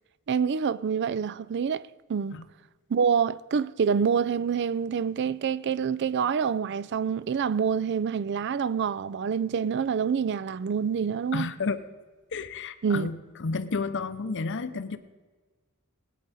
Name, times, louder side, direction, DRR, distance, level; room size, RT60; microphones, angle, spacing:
voice 1, 0.3-2.4 2.9-11.5 12.8-13.1, right 6 dB, 55° right, 0.4 m, -27 dB
voice 2, 11.3-11.8 12.3-15.0, left 4 dB, 55° left, 0.7 m, -31 dB
19.0 x 9.1 x 4.2 m
head